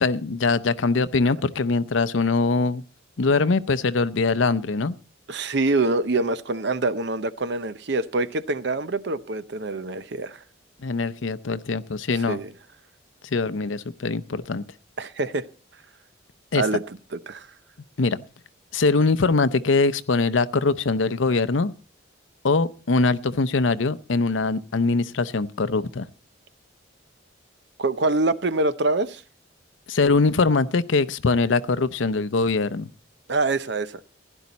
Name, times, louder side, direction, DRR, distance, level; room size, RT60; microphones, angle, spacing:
voice 1, 0.0-2.8 3.2-5.0 10.8-12.4 13.2-14.6 16.5-16.6 18.0-18.2 18.7-21.7 22.4-26.1 29.9-32.9, left 3 dB, 80° left, 0.7 m, -22 dB
voice 2, 5.3-10.4 12.3-12.5 15.0-15.5 16.5-17.0 17.3-17.5 27.8-29.2 33.3-34.0, right 2 dB, 60° right, 0.7 m, -25 dB
16.0 x 11.0 x 4.1 m
head